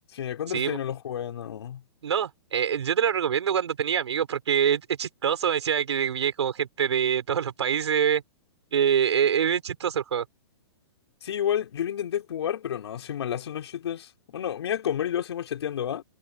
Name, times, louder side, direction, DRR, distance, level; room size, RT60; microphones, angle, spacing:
voice 1, 0.1-1.8 11.2-16.0, left 9 dB, 70° left, 5.0 m, -30 dB
voice 2, 2.0-8.2 8.7-10.2, right 8 dB, 85° right, 6.2 m, -25 dB
hypercardioid pair, 160°, 14 cm